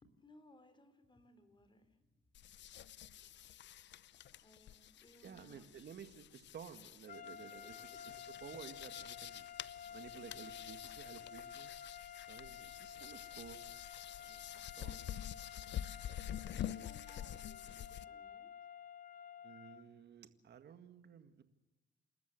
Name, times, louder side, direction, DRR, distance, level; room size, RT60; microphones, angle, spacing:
voice 1, 0.0-2.3 3.2-3.3 4.3-5.9 7.3-8.0 9.0-9.1 16.0-16.2 16.4-18.6, left 2 dB, 25° left, 10 dB, 3.8 m, -64 dB
sound 1, 2.3-18.1, left 11 dB, 65° left, 0.7 m, -48 dB
voice 2, 5.2-7.8 8.4-9.4 9.9-11.7 12.3-13.7 14.2-15.1 15.5-15.8 16.2-16.9 19.4-21.4, right 8 dB, 60° right, 9 dB, 2.0 m, -54 dB
sound 2, 7.1-19.9, left 9 dB, 40° left, 1.2 m, -52 dB
28.5 x 13.5 x 8.0 m, 1.0 s
cardioid pair, 90°, 20 cm